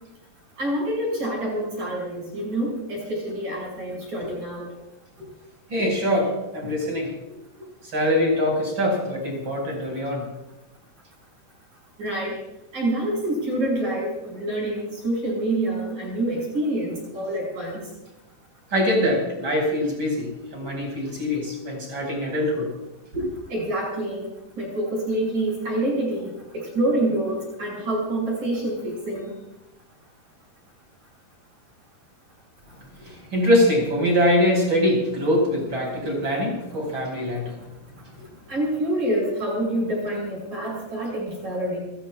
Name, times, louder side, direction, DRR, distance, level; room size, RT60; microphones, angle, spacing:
voice 1, 0.6-4.6 12.0-12.4 12.7-17.8 23.5-24.2 24.6-29.3 38.5-41.8, right 1 dB, 50° right, -4 dB, 6.7 m, -27 dB
voice 2, 5.7-7.1 7.9-10.2 18.7-20.3 20.5-22.7 23.1-23.2 33.0-37.5, equal, 30° right, -1 dB, 6.5 m, -23 dB
30.0 x 15.0 x 2.5 m, 0.97 s
omnidirectional pair, 4.7 m